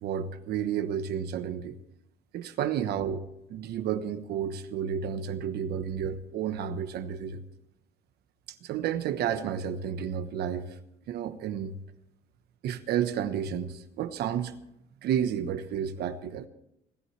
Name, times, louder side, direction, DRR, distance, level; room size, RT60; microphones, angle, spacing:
voice 1, 0.0-1.8 2.3-7.4 8.6-10.7 11.1-11.7 12.6-14.6 15.0-16.5, right 8 dB, 75° right, 1.2 m, -31 dB
29.0 x 11.0 x 3.3 m
cardioid pair, 110°, 17 cm